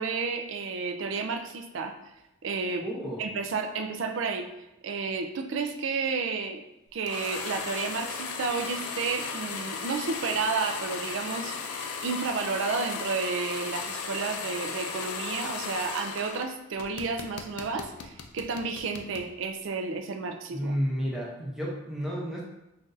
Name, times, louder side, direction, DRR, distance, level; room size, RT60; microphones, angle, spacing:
voice 1, 0.0-1.9 2.4-2.8 3.2-4.5 4.8-6.6 6.9-20.7, right 4 dB, 60° right, 5 dB, 0.4 m, -31 dB
voice 2, 2.8-3.2 20.5-22.4, equal, ahead, -5 dB, 0.6 m, -31 dB
sound 1, 7.1-16.5 16.8-19.3, left 5 dB, 90° left, 0.5 m, -36 dB
5.7 x 2.5 x 2.6 m, 0.90 s
head